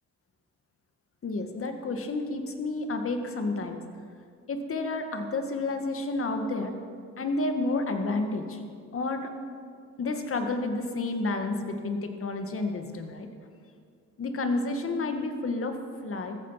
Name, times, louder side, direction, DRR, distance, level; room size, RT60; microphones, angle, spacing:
voice 1, 1.2-3.8 4.5-6.8 7.2-8.6 8.9-9.3 10.0-13.3 14.2-15.8 16.0-16.4, left 2 dB, 45° left, 6 dB, 1.9 m, -30 dB
15.0 x 14.5 x 5.9 m, 2.2 s
cardioid pair, 90°, 30 cm